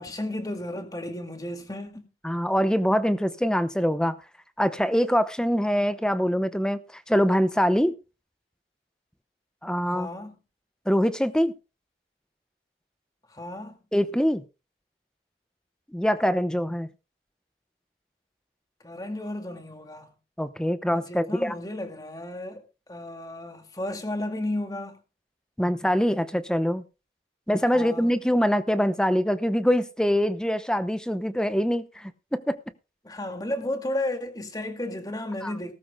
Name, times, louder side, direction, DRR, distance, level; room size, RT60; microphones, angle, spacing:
voice 1, 0.0-2.1 9.8-10.4 13.3-13.8 18.8-20.1 20.9-22.6 22.9-25.0 27.7-28.2 33.0-35.7, left 1 dB, 20° left, 2.1 m, -33 dB
voice 2, 2.2-4.2 4.6-7.9 9.6-10.1 10.9-11.5 13.9-14.4 15.9-16.9 20.4-21.5 25.6-26.8 27.5-32.6 35.4-35.5, equal, 5° left, 0.8 m, -24 dB
19.0 x 13.0 x 2.2 m
head